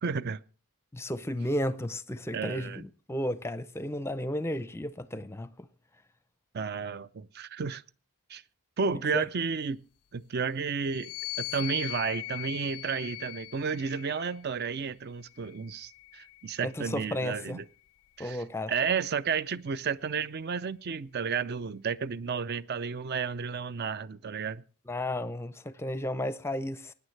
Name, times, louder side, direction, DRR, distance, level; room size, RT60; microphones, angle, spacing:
voice 1, 0.0-0.4 2.3-2.8 6.5-7.8 8.3-8.4 8.8-9.8 10.1-11.1 11.4-17.6 18.2-24.6, right 6 dB, 45° right, 0.5 m, -32 dB
voice 2, 0.9-5.7 9.1-9.2 16.6-17.6 18.2-18.7 24.9-26.9, left 1 dB, 10° left, 0.5 m, -33 dB
sound 1, 10.9-14.5 15.3-16.9, left 21 dB, 85° left, 0.5 m, -40 dB
21.0 x 9.8 x 3.2 m
head